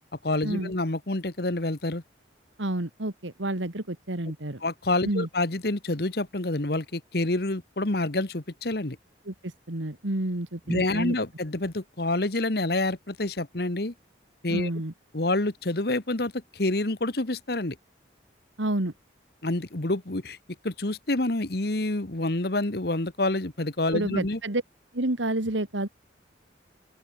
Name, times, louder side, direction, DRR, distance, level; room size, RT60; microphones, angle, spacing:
voice 1, 0.2-2.0 4.6-9.0 10.7-13.9 14.4-14.7 15.1-17.8 19.4-20.4 20.6-24.4, left 2 dB, 55° left, 1.5 m, -27 dB
voice 2, 2.6-4.6 5.0-5.3 9.3-11.1 14.5-14.9 18.6-18.9 23.9-24.6 24.9-25.9, right 1 dB, 90° right, 2.4 m, -29 dB
open air
head